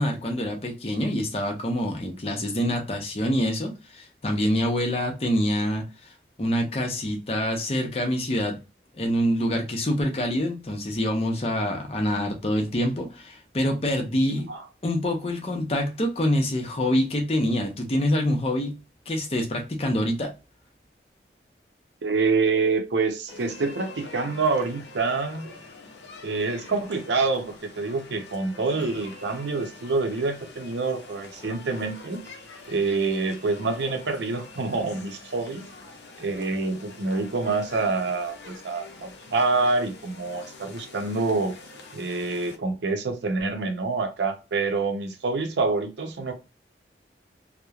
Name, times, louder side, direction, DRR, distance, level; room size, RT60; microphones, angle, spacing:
voice 1, 0.0-5.8 6.4-8.6 8.9-14.5 14.8-18.8 19.1-20.3, equal, 35° left, 0.6 m, -26 dB
voice 2, 22.0-25.5 26.2-32.2 32.7-35.6 36.2-41.6 41.9-46.3, right 3 dB, 80° right, 0.6 m, -26 dB
sound 1, 23.3-42.6, left 3 dB, 80° left, 0.5 m, -45 dB
2.9 x 2.0 x 2.3 m
head